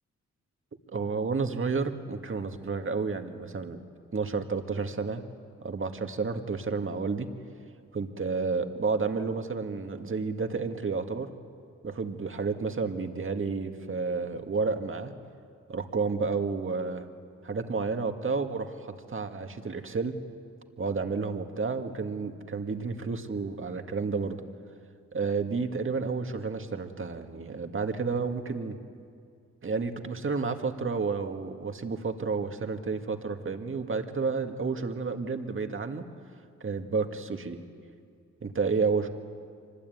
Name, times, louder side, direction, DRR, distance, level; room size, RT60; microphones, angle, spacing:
voice 1, 0.9-3.8 4.1-5.2 5.6-7.3 7.9-11.3 11.8-15.1 15.7-17.1 17.4-20.2 20.8-24.4 25.1-28.8 29.6-36.0 36.6-37.6 38.4-39.1, right 4 dB, 40° right, 6 dB, 2.0 m, -31 dB
24.5 x 20.5 x 9.4 m, 2.3 s
cardioid pair, 65°, 30 cm